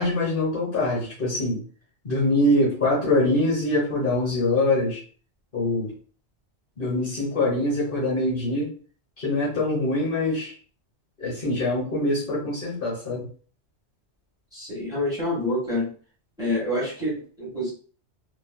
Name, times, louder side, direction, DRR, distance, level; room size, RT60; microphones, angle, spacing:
voice 1, 0.0-1.6 2.0-5.0 5.5-5.9 6.8-8.7 9.2-10.5 11.2-13.2, left 1 dB, 50° left, -4 dB, 1.2 m, -24 dB
voice 2, 14.5-15.9 16.4-17.7, left 1 dB, 5° right, -6 dB, 1.4 m, -27 dB
3.1 x 2.5 x 2.2 m, 0.41 s
omnidirectional pair, 1.2 m